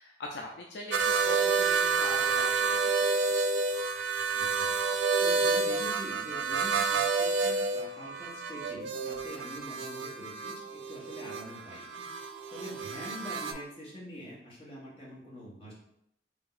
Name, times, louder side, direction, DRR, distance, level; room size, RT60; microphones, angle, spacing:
voice 1, 0.0-2.8 3.1-3.3, left 2 dB, 65° left, 0 dB, 0.4 m, -41 dB
sound 1, 0.9-13.5, right 4 dB, 90° right, 0.4 m, -29 dB
voice 2, 4.3-4.7 5.2-11.8 12.5-15.7, equal, 30° left, -5 dB, 1.3 m, -45 dB
3.4 x 2.8 x 3.9 m, 0.78 s
head